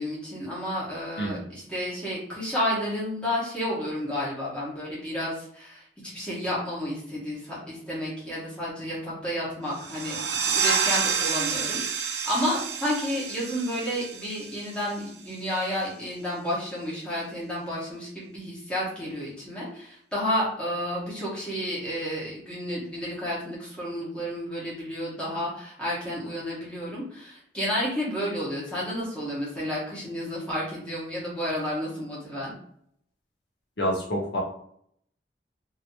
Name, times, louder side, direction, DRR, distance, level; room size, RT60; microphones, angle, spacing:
voice 1, 0.0-5.8 6.1-32.5, equal, 5° left, -7 dB, 1.4 m, -31 dB
sound 1, 9.7-15.1, right 6 dB, 70° right, 0.6 m, -29 dB
voice 2, 33.8-34.4, equal, 70° left, -2 dB, 1.0 m, -27 dB
3.0 x 2.8 x 2.9 m, 0.66 s
head